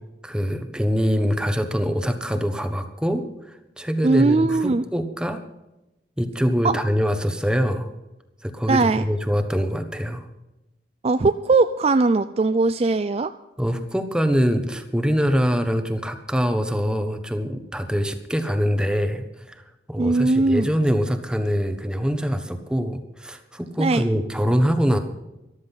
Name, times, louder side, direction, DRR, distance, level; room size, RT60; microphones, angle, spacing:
voice 1, 0.2-5.4 6.2-7.9 8.4-10.2 13.6-25.0, equal, 5° right, 8 dB, 1.2 m, -24 dB
voice 2, 4.0-4.8 6.6-6.7 8.7-9.0 11.0-13.3 20.0-20.7 23.8-24.0, right 3 dB, 35° right, 11 dB, 0.4 m, -19 dB
14.0 x 12.5 x 5.6 m, 0.95 s
head